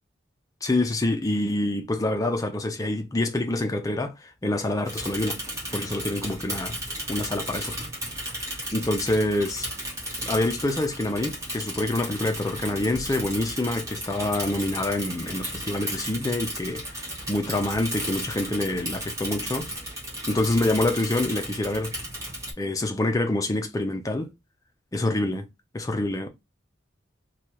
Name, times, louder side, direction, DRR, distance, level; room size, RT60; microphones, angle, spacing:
voice 1, 0.6-5.4 5.7-6.8 7.1-7.8 8.7-9.7 10.2-19.7 20.3-21.9 22.6-24.3 24.9-25.5 25.7-26.3, left 1 dB, 15° left, 0.4 m, -26 dB
Bicycle / Mechanisms, 4.8-22.5, equal, 15° right, 1.0 m, -34 dB
3.1 x 2.3 x 2.7 m
head